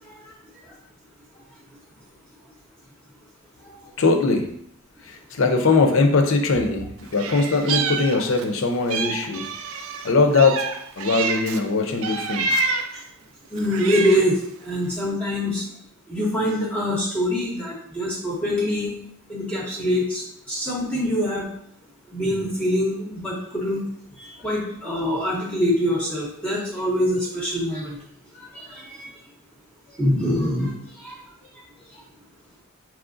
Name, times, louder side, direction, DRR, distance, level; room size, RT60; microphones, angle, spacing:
voice 1, 0.0-0.3 0.6-0.7 3.6-3.7 12.9-13.0 13.5-15.7 16.1-18.9 19.3-21.5 22.1-23.9 24.1-28.0 28.3-29.1 29.9-31.2 31.5-31.6 31.9-32.0, equal, 5° left, -4 dB, 0.6 m, -25 dB
voice 2, 4.0-4.5 5.0-9.5 10.0-10.7 11.0-12.7, left 3 dB, 65° left, 4 dB, 0.6 m, -21 dB
Meow, 7.1-8.5 8.9-11.6 12.0-13.0 13.6-14.4, right 4 dB, 75° right, 0.4 m, -28 dB
4.8 x 3.1 x 2.5 m, 0.68 s
head